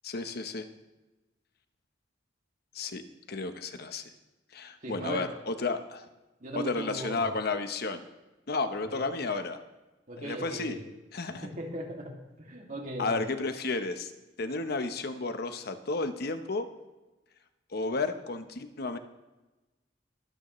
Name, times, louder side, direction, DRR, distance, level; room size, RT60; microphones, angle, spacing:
voice 1, 0.0-0.7 2.7-3.0 3.3-4.0 4.5-6.1 6.5-8.0 8.5-9.6 10.2-10.8 11.1-11.5 13.0-14.1 14.4-16.7 17.7-19.0, left 3 dB, 60° left, 8 dB, 1.0 m, -32 dB
voice 2, 4.8-5.3 6.4-7.3 8.9-9.1 10.1-10.9 11.4-13.2, right 1 dB, 45° right, 0 dB, 2.4 m, -38 dB
22.5 x 9.1 x 3.2 m, 1.1 s
head